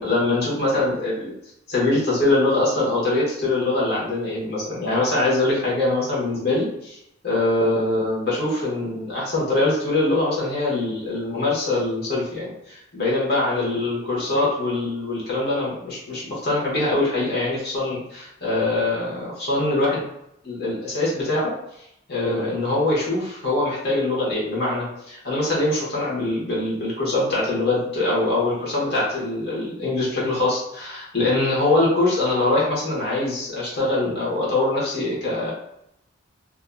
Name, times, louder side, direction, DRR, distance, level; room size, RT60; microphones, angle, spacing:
voice 1, 0.0-1.3 1.7-7.0 7.2-20.0 20.4-21.5 22.1-35.5, left 2 dB, 55° left, -6 dB, 1.2 m, -23 dB
2.8 x 2.4 x 2.2 m, 0.77 s
head